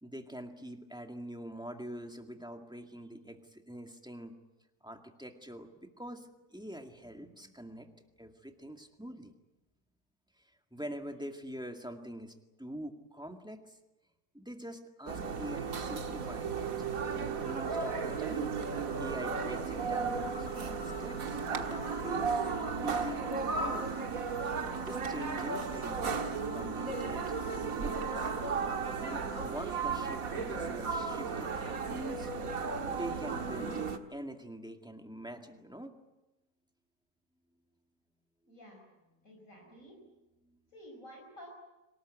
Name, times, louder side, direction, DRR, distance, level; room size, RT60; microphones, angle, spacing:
voice 1, 0.0-4.4 4.8-7.9 8.2-9.3 10.7-13.8 14.3-16.7 17.1-18.5 19.0-23.9 24.8-27.3 27.5-28.3 29.0-32.3 32.8-33.8 34.1-35.9 39.5-39.7 40.4-40.6, equal, 5° right, 4 dB, 2.1 m, -44 dB
sound 1, 15.1-34.0, right 5 dB, 65° right, 1.9 m, -35 dB
voice 2, 38.5-38.8 39.2-40.0 40.7-41.5, equal, 60° left, 0 dB, 5.4 m, -51 dB
26.0 x 19.0 x 9.3 m, 1.0 s
omnidirectional pair, 1.6 m